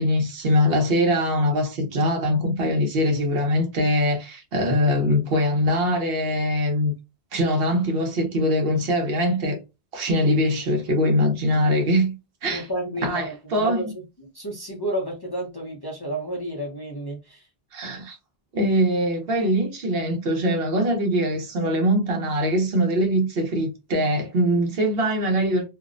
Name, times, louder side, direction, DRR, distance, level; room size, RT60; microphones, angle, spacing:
voice 1, 0.0-6.9 7.3-9.6 9.9-12.1 12.4-12.7 13.0-13.8 17.7-18.2 18.5-25.6, equal, 70° right, 0.9 m, -22 dB
voice 2, 11.5-11.8 12.5-13.9 14.2-17.4, right 1 dB, 30° left, 0.5 m, -31 dB
2.5 x 2.0 x 2.4 m
omnidirectional pair, 1.0 m